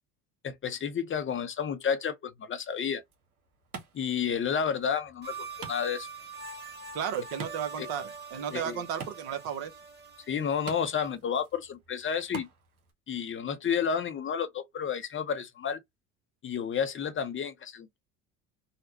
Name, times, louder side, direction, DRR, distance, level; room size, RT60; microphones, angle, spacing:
voice 1, 0.4-3.0 3.9-6.1 7.8-7.9 8.5-8.8 10.3-12.5 13.1-15.8 16.4-18.0, left 7 dB, 30° left, 0.6 m, -31 dB
Wood, 2.9-12.9, right 5 dB, 80° right, 1.1 m, -48 dB
sound 1, 5.2-11.1, right 5 dB, 25° right, 1.5 m, -44 dB
voice 2, 6.9-9.7, right 8 dB, 60° right, 1.0 m, -34 dB
4.1 x 2.1 x 2.7 m
hypercardioid pair, 65°, 43 cm